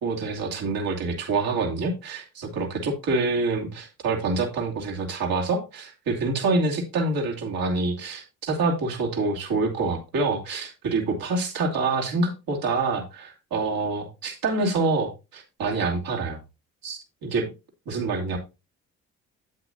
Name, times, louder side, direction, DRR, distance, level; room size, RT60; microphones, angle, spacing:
voice 1, 0.0-16.4 16.8-17.5 17.9-18.4, right 3 dB, 60° right, 0 dB, 2.7 m, -26 dB
8.6 x 7.9 x 2.8 m, 0.28 s
hypercardioid pair, 50°, 41 cm